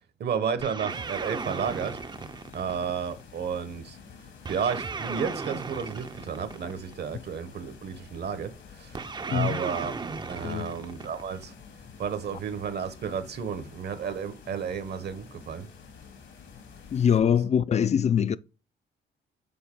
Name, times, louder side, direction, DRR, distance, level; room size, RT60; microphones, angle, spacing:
voice 1, 0.2-2.0 2.5-4.0 4.5-9.9 10.3-11.5 12.0-15.7, right 7 dB, 55° right, 0.9 m, -32 dB
sound 1, 0.6-3.2 4.4-7.0 8.9-11.5, right 4 dB, 20° right, 0.5 m, -36 dB
sound 2, 0.9-17.2, left 6 dB, 70° left, 1.9 m, -49 dB
voice 2, 9.3-9.6 10.4-10.8 16.9-18.4, left 8 dB, 35° left, 0.4 m, -23 dB
7.0 x 3.9 x 3.6 m
cardioid pair, 90°, 20 cm